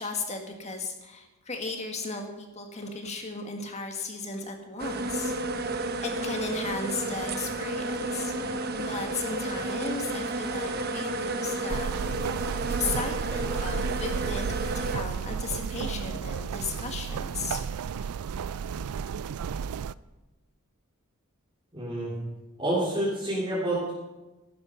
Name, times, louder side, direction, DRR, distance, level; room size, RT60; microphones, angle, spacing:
voice 1, 0.0-5.6 6.0-8.4 8.8-12.1 12.8-17.7 17.9-18.1, left 4 dB, 30° left, 3 dB, 1.8 m, -35 dB
sound 1, 4.8-15.0, right 2 dB, 45° right, 1.0 m, -32 dB
sound 2, 11.7-19.9, right 7 dB, 85° right, 0.4 m, -32 dB
voice 2, 21.7-22.1 22.6-23.9, right 1 dB, 25° right, -9 dB, 3.9 m, -28 dB
15.0 x 12.0 x 5.3 m, 1.1 s
head